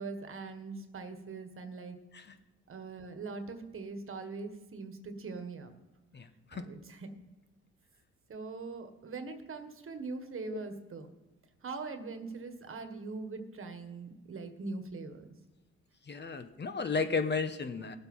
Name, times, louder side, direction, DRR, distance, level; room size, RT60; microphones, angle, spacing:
voice 1, 0.0-2.0 2.7-5.7 6.5-7.1 8.3-11.1 11.6-15.3, right 4 dB, 45° right, 8 dB, 1.7 m, -42 dB
voice 2, 6.1-6.6 10.5-10.6 16.0-18.0, left 4 dB, 35° left, 8 dB, 1.1 m, -34 dB
18.5 x 7.9 x 5.6 m, 1.1 s
cardioid pair, 90°, 30 cm